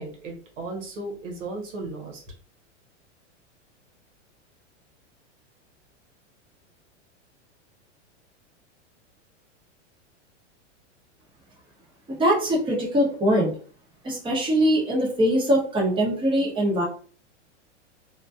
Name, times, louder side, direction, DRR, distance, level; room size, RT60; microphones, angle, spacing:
voice 1, 0.0-2.2, right 2 dB, 85° right, 1 dB, 1.0 m, -35 dB
voice 2, 12.1-13.5 14.0-16.8, equal, 15° right, -3 dB, 0.9 m, -22 dB
2.4 x 2.2 x 2.6 m, 0.42 s
hypercardioid pair, 115°, 36 cm